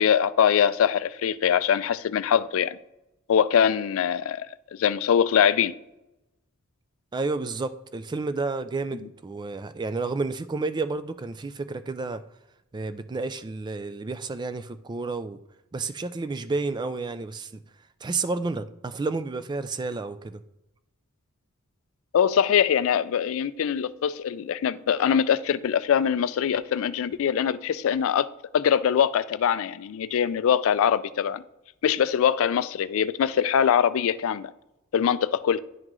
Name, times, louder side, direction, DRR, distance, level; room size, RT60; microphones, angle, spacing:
voice 1, 0.0-2.8 3.3-4.5 4.8-5.7 22.1-28.3 28.5-31.4 31.8-34.5 34.9-35.6, left 8 dB, 65° left, 0.3 m, -23 dB
voice 2, 7.1-12.2 12.7-15.4 15.7-17.5 18.0-20.4, right 3 dB, 20° right, 0.3 m, -31 dB
11.0 x 3.7 x 3.1 m
head